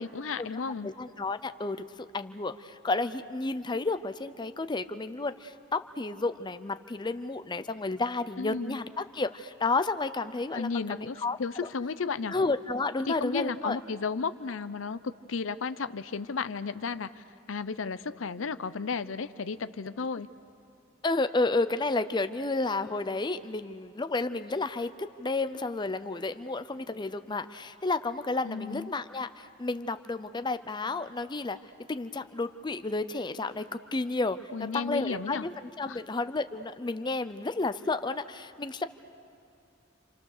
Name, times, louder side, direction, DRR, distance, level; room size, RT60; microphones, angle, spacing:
voice 1, 0.0-0.9 8.4-8.8 10.5-12.3 13.0-20.3 28.4-28.9 34.5-35.4 35.9-36.0, left 5 dB, 90° left, 13 dB, 0.7 m, -34 dB
voice 2, 0.8-1.8 2.1-11.7 12.3-13.8 21.0-24.9 25.2-31.6 31.9-34.4 34.7-38.8, left 3 dB, 25° left, 10 dB, 0.6 m, -31 dB
28.5 x 27.0 x 6.6 m, 2.7 s
head